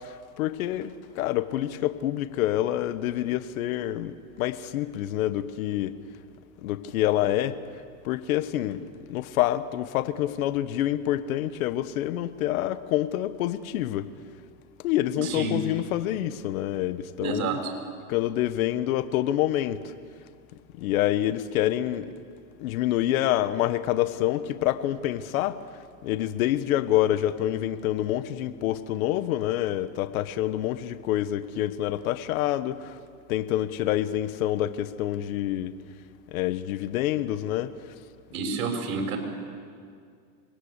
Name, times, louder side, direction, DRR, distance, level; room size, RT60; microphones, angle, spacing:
voice 1, 0.0-6.0 6.6-7.6 8.0-14.1 14.8-17.5 18.1-19.9 20.8-22.1 22.6-25.6 26.0-33.0 33.3-35.7 36.3-37.7, left 13 dB, 70° left, 1.3 m, -27 dB
voice 2, 15.2-15.6 17.2-17.7 38.3-39.2, right 4 dB, 70° right, 6.0 m, -29 dB
25.5 x 20.5 x 8.3 m
supercardioid pair, 125°, 44 cm